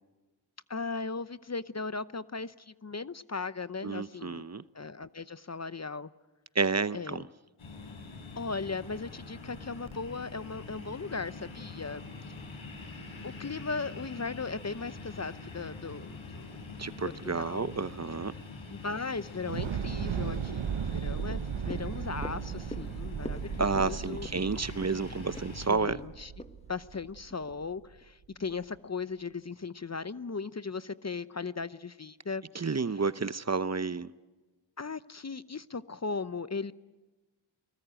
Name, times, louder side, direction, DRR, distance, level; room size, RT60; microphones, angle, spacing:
voice 1, 0.7-4.4 4.7-6.1 6.9-7.3 8.3-12.4 13.2-16.5 17.0-17.7 18.3-18.4 18.7-24.6 25.6-26.3 26.7-32.7 34.8-36.7, left 4 dB, 35° left, 15 dB, 0.8 m, -37 dB
voice 2, 3.8-4.6 6.6-7.2 16.8-18.3 23.6-26.0 32.5-34.1, right 4 dB, 35° right, 15 dB, 0.8 m, -30 dB
sound 1, 7.6-25.7, left 3 dB, 75° left, 5.2 m, -45 dB
Thunder / Explosion, 19.4-27.7, right 8 dB, 70° right, 0.9 m, -36 dB
sound 2, 21.2-27.6 28.0-28.1, left 1 dB, 15° left, 1.2 m, -46 dB
30.0 x 19.5 x 9.0 m, 1.2 s
cardioid pair, 45°, 48 cm